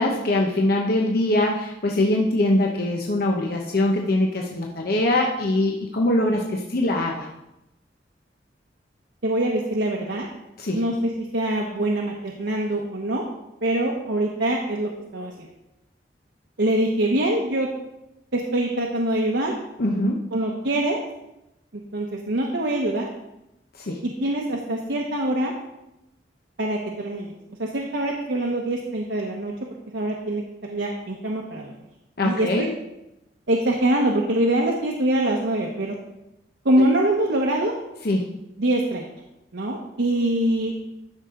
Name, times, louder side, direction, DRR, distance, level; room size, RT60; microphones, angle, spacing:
voice 1, 0.0-7.3 10.6-10.8 19.8-20.3 23.8-24.0 32.2-32.7 36.8-36.9 38.0-38.4, left 1 dB, 60° left, 0 dB, 0.8 m, -23 dB
voice 2, 9.2-10.3 10.7-13.2 13.6-15.5 16.6-17.7 18.3-19.5 20.3-21.0 21.7-23.1 24.0-25.5 26.6-27.3 27.6-29.5 29.9-31.7 32.2-32.7 33.5-36.0 36.6-37.7 38.6-39.1 39.5-40.7, right 1 dB, 75° right, -1 dB, 1.0 m, -24 dB
12.5 x 5.7 x 3.7 m, 0.91 s
head